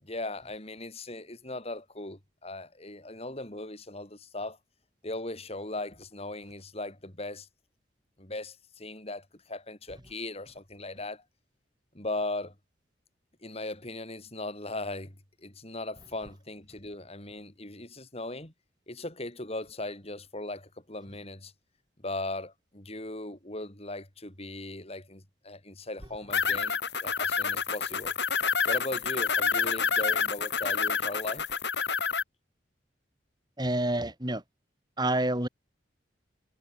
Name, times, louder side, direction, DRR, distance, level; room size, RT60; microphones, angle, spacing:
voice 1, 0.0-4.6 5.0-7.5 8.2-11.2 11.9-12.5 13.4-18.5 18.9-21.5 22.0-28.1 28.7-31.5, left 2 dB, 35° left, 4.6 m, -38 dB
sound 1, 26.3-32.2, left 5 dB, 65° left, 7.7 m, -28 dB
voice 2, 33.6-34.4 35.0-35.5, right 1 dB, 25° right, 6.4 m, -28 dB
head